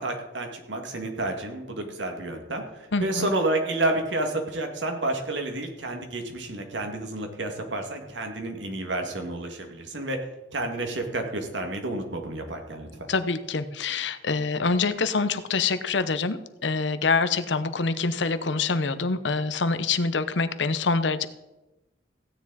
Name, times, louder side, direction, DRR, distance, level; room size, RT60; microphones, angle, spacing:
voice 1, 0.0-10.2 10.5-13.1, right 2 dB, 85° right, 3 dB, 2.2 m, -30 dB
voice 2, 2.9-3.3 13.1-21.3, left 4 dB, 80° left, 12 dB, 0.8 m, -25 dB
16.0 x 9.7 x 4.2 m, 1.0 s
head